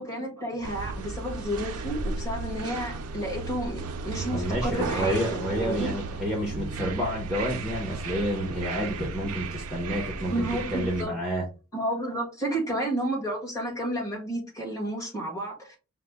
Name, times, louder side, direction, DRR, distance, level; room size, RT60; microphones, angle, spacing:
voice 1, 0.0-5.9 9.9-10.0 10.3-11.1 11.7-15.8, right 1 dB, 15° left, 1.6 m, -31 dB
sound 1, 0.6-11.0, right 3 dB, 90° right, 0.5 m, -34 dB
voice 2, 4.3-11.4, equal, 5° right, 0.8 m, -30 dB
5.0 x 2.1 x 3.4 m
head